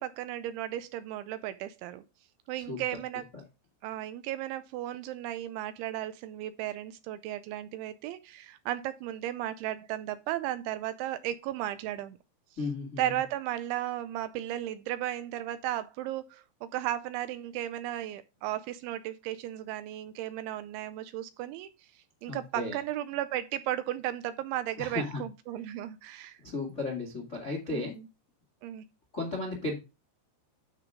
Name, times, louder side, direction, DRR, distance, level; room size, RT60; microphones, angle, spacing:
voice 1, 0.0-2.0 2.5-3.2 3.8-12.2 13.0-21.7 22.2-26.4 27.7-27.9 28.6-28.9, right 13 dB, 80° right, 2.8 m, -35 dB
voice 2, 12.6-13.2 22.3-22.8 24.8-25.2 26.4-27.9 29.1-29.8, left 2 dB, 40° left, 1.0 m, -34 dB
12.5 x 5.0 x 3.6 m
omnidirectional pair, 5.7 m